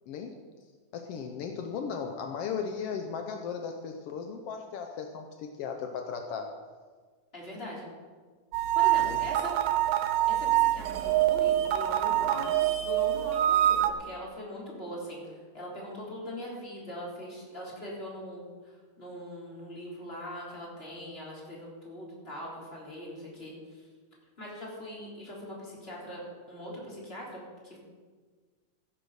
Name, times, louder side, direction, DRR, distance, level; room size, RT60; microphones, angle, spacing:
voice 1, 0.1-0.4 0.9-6.5 9.0-9.2 12.2-12.5, left 6 dB, 80° left, 4 dB, 1.3 m, -36 dB
voice 2, 7.3-7.9 8.7-9.5 10.3-12.5 12.8-23.8 24.4-27.8, equal, 20° left, -5 dB, 3.5 m, -41 dB
sound 1, 8.5-13.9, right 13 dB, 85° right, 2.1 m, -25 dB
15.5 x 6.6 x 6.4 m, 1.5 s
omnidirectional pair, 3.6 m